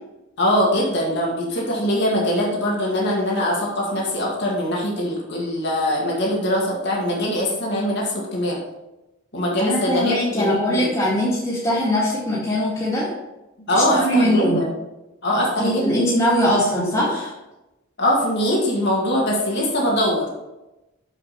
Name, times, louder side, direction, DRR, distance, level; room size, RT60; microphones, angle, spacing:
voice 1, 0.4-8.6 9.3-10.9 13.6-14.7 15.2-16.0 18.0-20.3, equal, 55° left, -3 dB, 2.1 m, -22 dB
voice 2, 9.6-13.1 13.7-14.6 15.3-17.3, equal, 20° left, -10 dB, 2.0 m, -21 dB
7.0 x 6.7 x 4.3 m, 0.98 s
head